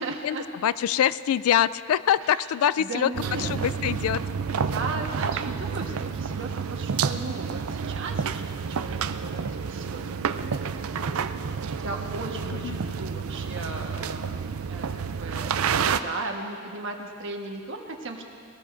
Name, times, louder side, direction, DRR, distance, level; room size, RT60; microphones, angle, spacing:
voice 1, 0.0-0.5 2.2-3.5 4.5-18.2, right 2 dB, 60° right, 1 dB, 1.4 m, -37 dB
voice 2, 0.6-3.1 3.4-4.2 12.6-12.8, left 10 dB, 85° left, 17 dB, 0.3 m, -24 dB
sound 1, 3.1-16.0, right 6 dB, 85° right, 0.5 m, -29 dB
22.0 x 18.0 x 2.6 m, 2.3 s
head